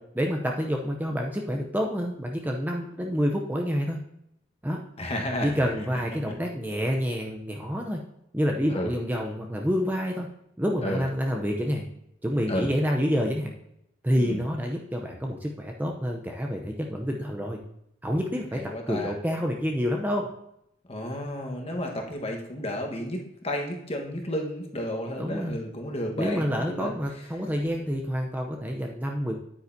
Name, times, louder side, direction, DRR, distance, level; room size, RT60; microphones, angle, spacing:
voice 1, 0.2-4.0 4.6-4.8 5.4-8.0 8.3-10.3 10.6-11.8 12.2-13.5 14.0-17.6 18.0-20.3 25.2-25.6 26.2-29.4, equal, 10° right, 1 dB, 0.6 m, -28 dB
voice 2, 5.0-5.6 8.7-8.9 10.8-11.0 12.5-12.7 14.2-14.4 18.5-19.1 20.9-26.9, left 1 dB, 30° left, 2 dB, 1.3 m, -32 dB
9.5 x 8.7 x 2.7 m, 0.78 s
head